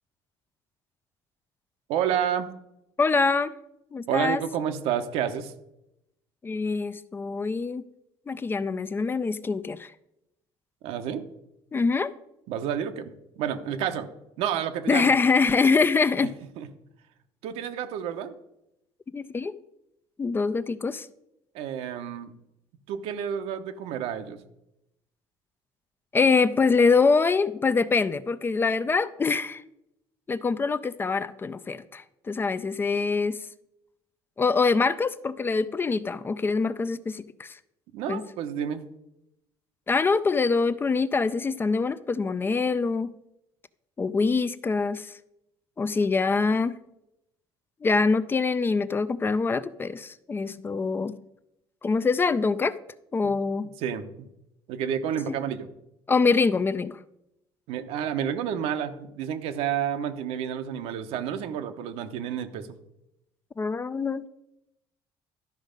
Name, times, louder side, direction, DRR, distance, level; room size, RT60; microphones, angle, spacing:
voice 1, 1.9-2.5 4.1-5.5 10.8-11.2 12.5-14.1 14.4-15.1 16.2-16.3 16.6-16.7 17.4-18.3 21.5-22.3 22.9-24.4 37.9-38.8 53.2-53.3 53.8-54.3 54.7-55.7 57.7-62.7, right 9 dB, 85° right, 0.9 m, -30 dB
voice 2, 3.0-3.5 3.9-4.4 6.4-7.8 8.3-9.9 11.7-12.1 14.9-16.3 19.1-19.5 20.2-21.1 26.1-29.6 30.3-33.4 34.4-37.6 38.1-38.2 39.9-43.1 44.0-45.1 45.8-46.8 47.8-51.1 51.8-52.8 53.1-53.7 56.1-57.0 63.6-64.3, left 4 dB, 20° left, 0.4 m, -24 dB
12.0 x 5.2 x 5.1 m
cardioid pair, 120°, 10 cm